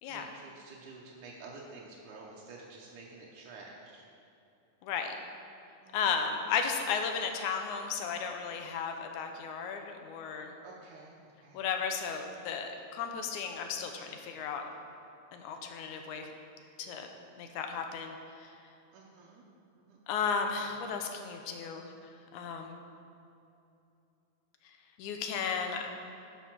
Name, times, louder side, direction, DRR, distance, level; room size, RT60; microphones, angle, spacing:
voice 1, 0.0-4.0 5.8-6.2 10.6-11.6 18.9-19.4 19.8-20.0 20.6-20.7, right 3 dB, 80° right, -3 dB, 2.3 m, -50 dB
voice 2, 4.8-5.1 5.9-10.5 11.5-14.6 15.3-16.3 16.8-17.1 17.4-18.6 20.1-21.9 22.3-22.8 24.6-25.9, left 6 dB, 80° left, 4 dB, 2.2 m, -34 dB
10.0 x 5.7 x 6.1 m, 2.7 s
omnidirectional pair, 3.6 m